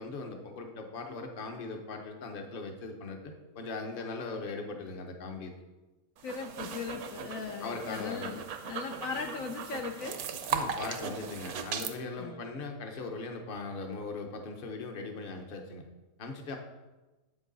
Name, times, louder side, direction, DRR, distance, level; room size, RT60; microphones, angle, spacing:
voice 1, 0.0-5.5 7.6-8.4 10.5-15.9 16.2-16.6, left 3 dB, 40° left, 4 dB, 1.0 m, -39 dB
voice 2, 6.2-10.2 12.2-12.4, left 5 dB, 70° left, 4 dB, 1.0 m, -38 dB
sound 1, 6.2-11.9, right 7 dB, 75° right, 1.1 m, -38 dB
8.1 x 7.4 x 4.0 m, 1.1 s
omnidirectional pair, 1.6 m